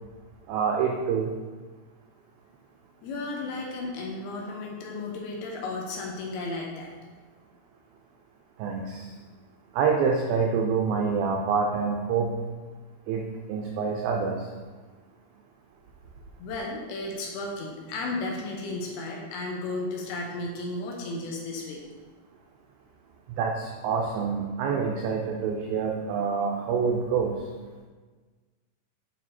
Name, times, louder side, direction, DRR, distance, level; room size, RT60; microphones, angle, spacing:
voice 1, 0.5-1.3 8.6-9.1 9.7-12.4 13.1-14.5 23.4-27.4, right 5 dB, 90° right, 1 dB, 2.1 m, -26 dB
voice 2, 3.0-6.9 16.4-21.8, left 2 dB, 75° left, -1 dB, 2.6 m, -34 dB
8.6 x 3.9 x 4.3 m, 1.4 s
omnidirectional pair, 4.9 m